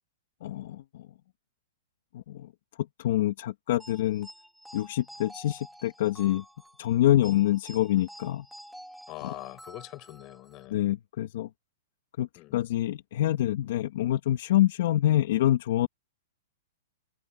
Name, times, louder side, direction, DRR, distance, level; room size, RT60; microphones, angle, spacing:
voice 1, 0.4-1.0 2.1-2.5 3.0-4.3 4.7-6.4 6.8-8.5 9.2-9.3 10.7-11.5 12.2-15.9, left 13 dB, 60° left, 2.2 m, -26 dB
sound 1, 3.8-10.7, equal, ahead, 2.8 m, -49 dB
voice 2, 9.1-10.9 12.4-12.6, left 20 dB, 30° left, 6.9 m, -43 dB
hypercardioid pair, 155°, 0 cm